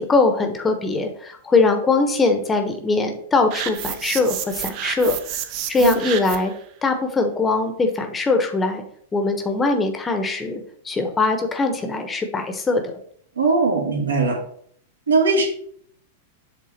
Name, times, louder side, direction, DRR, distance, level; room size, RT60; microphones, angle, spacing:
voice 1, 0.0-5.2 5.7-6.5 6.8-8.8 9.1-12.8, left 3 dB, 15° left, 5 dB, 1.0 m, -21 dB
sound 1, 3.5-6.6, right 10 dB, 45° right, 0.7 m, -30 dB
voice 2, 13.4-14.4 15.1-15.5, right 4 dB, 70° right, 1 dB, 1.6 m, -19 dB
7.7 x 3.5 x 4.2 m, 0.63 s
figure-of-eight pair, 95°, 0 cm